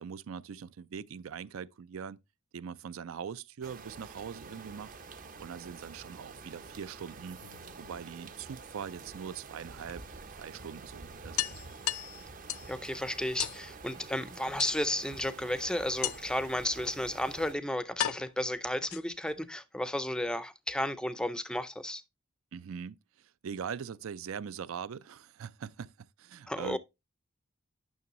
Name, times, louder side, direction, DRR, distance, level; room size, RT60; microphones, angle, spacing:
voice 1, 0.0-2.2 2.5-4.9 5.4-7.4 7.8-10.0 10.4-11.5 22.5-26.8, right 7 dB, 80° right, 0.4 m, -42 dB
sound 1, 3.6-17.5, right 4 dB, 40° right, 0.6 m, -48 dB
sound 2, 7.4-8.4 9.9-10.0 10.4-10.5 10.8-10.9 11.4-12.8 13.4-13.6 14.6-15.1 16.0-16.5 17.3-17.4 18.0-19.3, left 13 dB, 90° left, 0.4 m, -36 dB
voice 2, 12.7-22.0 26.5-26.8, left 1 dB, 5° left, 0.4 m, -33 dB
9.5 x 6.1 x 3.0 m
head